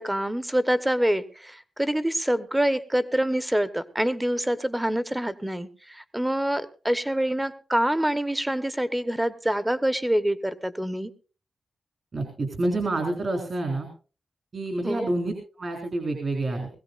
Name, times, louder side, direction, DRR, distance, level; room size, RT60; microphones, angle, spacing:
voice 1, 0.0-11.1 14.8-15.1, right 1 dB, 10° right, 12 dB, 1.2 m, -26 dB
voice 2, 12.1-13.9 14.5-16.7, right 2 dB, 50° right, 4 dB, 3.7 m, -28 dB
21.0 x 16.0 x 2.6 m, 0.36 s
wide cardioid pair, 100°, 0 cm